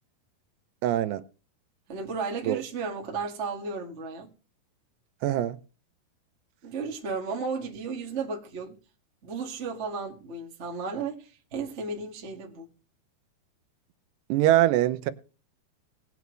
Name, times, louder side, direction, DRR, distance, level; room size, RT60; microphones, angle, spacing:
voice 1, 0.8-1.2 2.5-2.6 5.2-5.6 14.3-15.1, right 14 dB, 85° right, 2.9 m, -23 dB
voice 2, 1.9-4.3 6.6-8.8 9.2-12.7, right 4 dB, 55° right, 0.7 m, -34 dB
19.0 x 8.2 x 3.1 m
omnidirectional pair, 4.7 m